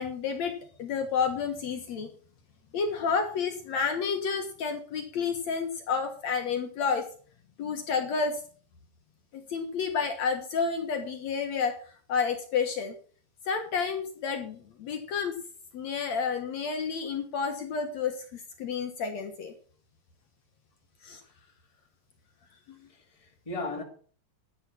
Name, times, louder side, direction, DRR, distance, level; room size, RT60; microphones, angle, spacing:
voice 1, 0.0-2.1 2.7-7.1 7.6-8.4 9.3-11.8 12.1-12.9 13.5-15.4 15.7-19.5 21.0-21.2, left 5 dB, 60° left, 2.5 m, -30 dB
voice 2, 22.9-23.8, left 2 dB, 10° left, 2.5 m, -38 dB
11.5 x 9.9 x 5.9 m
omnidirectional pair, 3.7 m